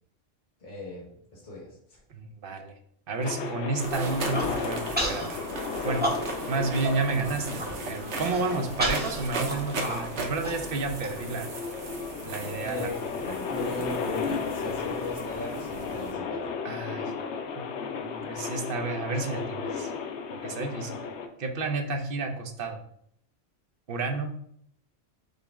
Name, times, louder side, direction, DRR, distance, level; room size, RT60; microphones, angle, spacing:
voice 1, 0.6-2.0 12.6-16.5, left 2 dB, 45° left, -4 dB, 1.3 m, -38 dB
voice 2, 2.1-2.7 3.1-5.5 5.8-6.1 6.5-11.5 12.2-12.9 16.6-17.1 17.6-17.7 17.9-19.9 20.3-21.0 21.4-22.8 23.9-24.3, right 3 dB, 60° right, 4 dB, 0.8 m, -31 dB
sound 1, 3.2-21.3, left 5 dB, 85° left, 0.9 m, -35 dB
sound 2, 3.8-16.1, right 3 dB, 85° right, 1.0 m, -38 dB
Human voice, 4.1-4.5 5.0-5.3 5.6-6.5 6.8-6.9 7.3-7.7 8.2-11.1, right 1 dB, 10° right, 0.8 m, -31 dB
5.3 x 2.0 x 4.5 m, 0.68 s
omnidirectional pair, 1.1 m